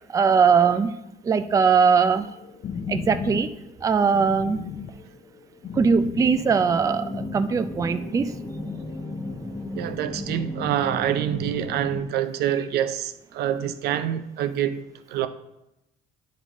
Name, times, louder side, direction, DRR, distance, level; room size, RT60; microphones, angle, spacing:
voice 1, 0.1-2.3 2.9-3.5 3.8-4.7 5.7-8.4, right 6 dB, 20° right, 0.4 m, -21 dB
sound 1, 2.2-7.4, left 6 dB, 50° left, 0.6 m, -36 dB
sound 2, 6.4-12.0, left 2 dB, 10° left, 0.9 m, -35 dB
voice 2, 9.7-15.3, right 10 dB, 70° right, 0.5 m, -26 dB
10.0 x 3.7 x 3.6 m
cardioid pair, 110°, 17 cm